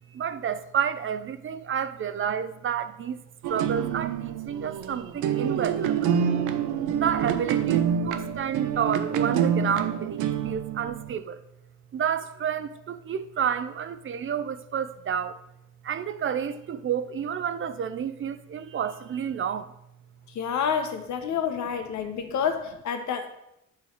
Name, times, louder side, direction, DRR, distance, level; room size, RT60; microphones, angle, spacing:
voice 1, 0.1-3.2 3.5-6.1 6.9-11.4 11.9-15.4 15.8-19.7, right 8 dB, 45° right, 0.5 m, -30 dB
sound 1, 3.4-11.1, right 8 dB, 85° right, 0.7 m, -27 dB
voice 2, 20.3-23.3, left 7 dB, 70° left, 1.0 m, -28 dB
8.5 x 3.2 x 6.3 m
cardioid pair, 90°, 30 cm